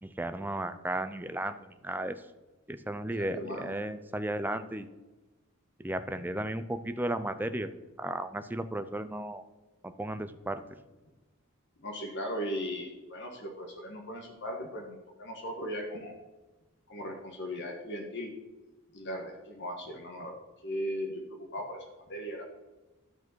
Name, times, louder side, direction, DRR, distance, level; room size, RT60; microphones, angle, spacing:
voice 1, 0.0-2.2 2.7-4.9 5.8-7.7 8.0-9.4 9.8-10.6, right 1 dB, 10° right, 10 dB, 0.5 m, -34 dB
voice 2, 3.2-3.7 11.8-16.1 16.9-18.3 18.9-20.4 20.6-22.4, equal, 55° left, 2 dB, 1.4 m, -38 dB
12.5 x 4.8 x 6.2 m, 1.1 s
head